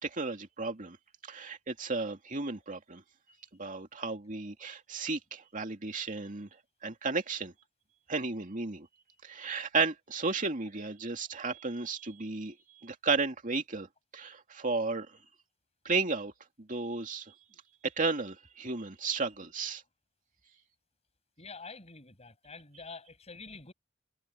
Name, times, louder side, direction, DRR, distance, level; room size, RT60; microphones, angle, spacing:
voice 1, 0.0-1.0 1.2-3.0 3.6-6.5 6.8-7.5 8.1-8.9 9.2-12.5 12.8-13.9 14.1-15.1 15.8-16.3 16.6-17.3 18.0-19.8, right 4 dB, 40° right, 2.5 m, -33 dB
voice 2, 21.4-23.7, left 4 dB, 30° left, 6.3 m, -47 dB
head